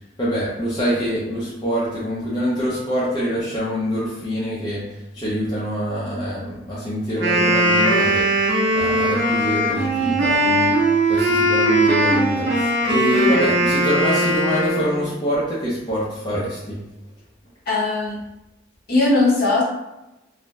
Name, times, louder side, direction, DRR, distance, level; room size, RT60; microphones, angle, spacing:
voice 1, 0.2-8.3 8.7-10.7 11.1-16.8, equal, 20° left, -8 dB, 0.5 m, -25 dB
Wind instrument woodwind instrument, 7.1-15.1, right 1 dB, 60° right, 0.6 m, -19 dB
voice 2, 17.7-18.2 18.9-19.6, left 2 dB, 50° left, -5 dB, 0.8 m, -18 dB
2.5 x 2.0 x 3.1 m, 0.95 s
head